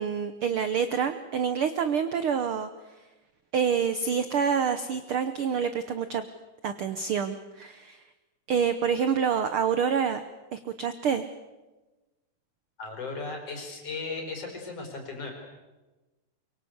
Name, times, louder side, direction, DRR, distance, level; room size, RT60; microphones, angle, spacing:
voice 1, 0.0-2.7 3.5-6.3 6.6-8.0 8.5-10.2 10.5-11.2, right 7 dB, 70° right, 11 dB, 1.3 m, -27 dB
voice 2, 12.8-15.3, left 3 dB, 50° left, 2 dB, 5.8 m, -36 dB
24.0 x 23.5 x 8.1 m, 1.1 s
omnidirectional pair, 3.6 m